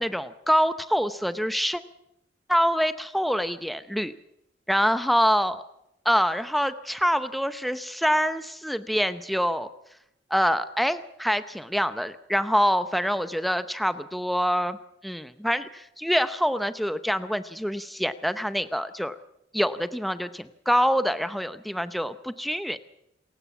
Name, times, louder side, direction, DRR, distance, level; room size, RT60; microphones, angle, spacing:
voice 1, 0.0-1.8 2.5-4.1 4.7-5.6 6.0-9.7 10.3-14.8 15.0-19.2 19.5-22.8, equal, ahead, 12 dB, 0.8 m, -25 dB
28.0 x 15.5 x 7.2 m, 0.81 s
head